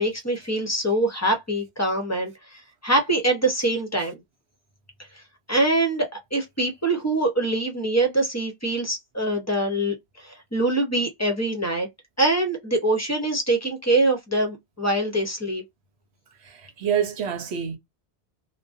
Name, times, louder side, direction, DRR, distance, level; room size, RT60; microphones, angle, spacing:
voice 1, 0.0-4.2 5.5-9.9 10.2-11.9 12.2-15.6, right 2 dB, 15° left, 0.6 m, -24 dB
voice 2, 16.4-17.8, right 8 dB, 75° right, 0.9 m, -27 dB
2.4 x 2.1 x 2.4 m
omnidirectional pair, 1.1 m